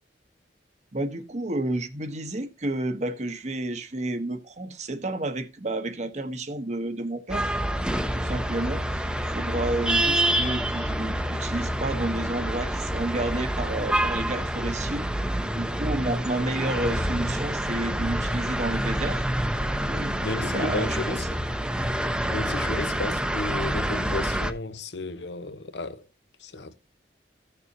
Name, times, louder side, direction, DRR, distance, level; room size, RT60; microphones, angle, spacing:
voice 1, 0.9-7.5 8.1-9.0 9.3-15.1 15.4-19.2 19.9-21.3, right 2 dB, 40° right, 1.0 m, -31 dB
sound 1, 7.3-24.5, right 1 dB, 5° right, 0.7 m, -27 dB
voice 2, 20.2-21.2 22.3-26.0 26.4-26.8, left 2 dB, 80° left, 1.0 m, -33 dB
15.0 x 6.9 x 2.7 m
head